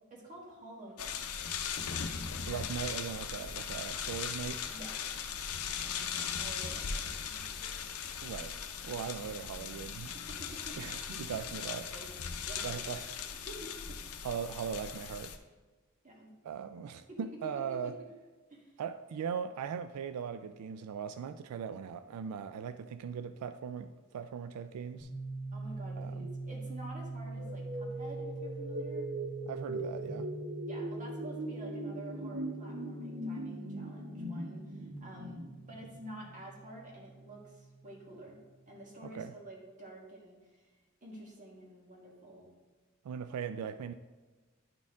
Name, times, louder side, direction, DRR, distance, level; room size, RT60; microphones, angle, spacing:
voice 1, 0.1-1.4 4.7-5.3 5.8-7.4 10.0-10.8 11.1-11.4 11.8-12.1 12.5-12.9 13.4-14.0 16.0-16.3 17.1-17.9 18.5-18.8 25.5-29.1 30.7-35.4 35.7-38.4 38.7-40.7 41.0-42.5, right 1 dB, 35° right, -2 dB, 1.5 m, -49 dB
sound 1, 1.0-15.4, left 7 dB, 80° left, 0.6 m, -39 dB
voice 2, 2.5-4.6 8.2-8.5 8.8-10.1 10.8-11.9 12.6-13.1 14.2-15.3 16.4-18.0 18.8-25.1 26.0-26.3 29.5-30.3 39.0-39.3 43.0-43.9, right 7 dB, 90° right, 11 dB, 0.3 m, -39 dB
sound 2, 25.0-38.6, right 2 dB, 25° left, 1.7 m, -44 dB
sound 3, 27.4-36.3, right 1 dB, 50° right, 0.8 m, -40 dB
10.5 x 4.2 x 3.6 m, 1.3 s
head